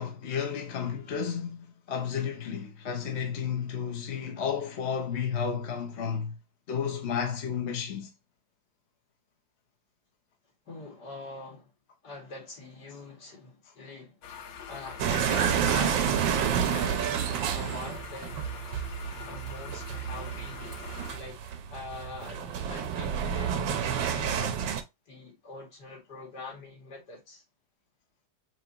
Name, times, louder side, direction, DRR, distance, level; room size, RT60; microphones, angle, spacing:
voice 1, 0.0-6.4 6.7-8.1, left 7 dB, 45° left, 1.0 m, -32 dB
voice 2, 10.7-11.7 12.0-14.2 14.7-18.4 19.2-24.8 25.1-27.4, left 3 dB, 60° left, 2.7 m, -44 dB
sound 1, 14.2-21.2, left 6 dB, 85° left, 1.5 m, -44 dB
sound 2, 15.0-24.8, right 8 dB, 85° right, 1.5 m, -30 dB
6.0 x 2.8 x 2.8 m
omnidirectional pair, 2.0 m